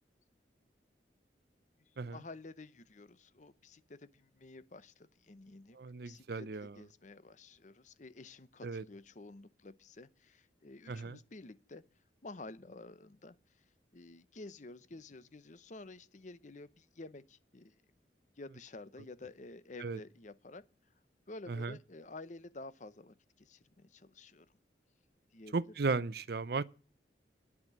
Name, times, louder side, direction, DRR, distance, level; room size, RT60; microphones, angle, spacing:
voice 1, 1.8-5.8 6.0-6.5 6.7-11.8 12.2-13.4 13.9-17.8 18.4-20.6 21.3-24.5 25.3-25.5, left 2 dB, 45° left, 0.8 m, -51 dB
voice 2, 5.7-6.8 8.6-8.8 10.9-11.2 19.8-20.0 21.5-21.8 25.5-26.6, right 4 dB, 60° right, 0.6 m, -36 dB
11.0 x 6.0 x 8.7 m
head